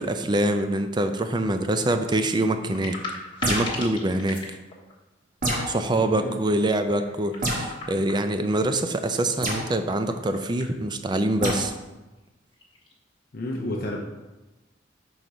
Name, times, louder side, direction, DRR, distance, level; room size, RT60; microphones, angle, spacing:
voice 1, 0.0-3.0 3.5-4.4 5.7-11.7, right 1 dB, 25° right, 8 dB, 0.4 m, -25 dB
sound 1, 2.7-4.9 6.9-8.6 10.0-10.7 11.1-11.2 12.2-12.3 12.5-12.9, left 3 dB, 25° left, 1.2 m, -38 dB
sound 2, 3.4-3.9 5.4-5.8 7.4-7.7 9.4-9.7 11.4-11.6, right 1 dB, 45° right, 1.3 m, -26 dB
voice 2, 5.9-6.4 13.3-14.0, left 1 dB, 50° left, -3 dB, 0.7 m, -31 dB
5.9 x 3.9 x 4.8 m, 1.1 s
head